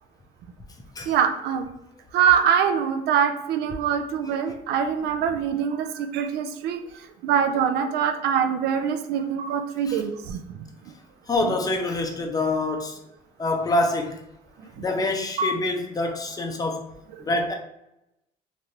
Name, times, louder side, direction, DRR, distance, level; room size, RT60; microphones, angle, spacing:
voice 1, 1.1-1.7 2.1-6.8 7.2-10.4 11.4-11.5 15.4-15.5, right 7 dB, 75° right, 8 dB, 0.4 m, -24 dB
voice 2, 11.3-13.0 13.4-14.2 14.8-16.8 17.2-17.5, left 2 dB, 20° left, 3 dB, 0.5 m, -26 dB
3.2 x 2.5 x 2.6 m, 0.84 s
cardioid pair, 110°, 17 cm